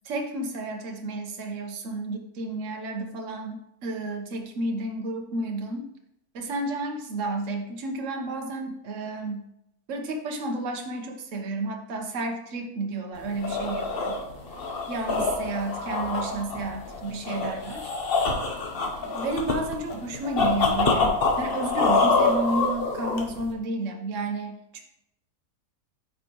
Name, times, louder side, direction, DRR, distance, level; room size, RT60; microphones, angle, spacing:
voice 1, 0.0-5.9 6.3-9.4 9.9-14.2 14.9-17.9 18.7-24.8, right 2 dB, 60° right, 3 dB, 1.3 m, -31 dB
sound 1, 13.2-23.5, left 3 dB, 45° left, 1.0 m, -26 dB
8.9 x 5.4 x 3.0 m, 0.82 s
omnidirectional pair, 1.5 m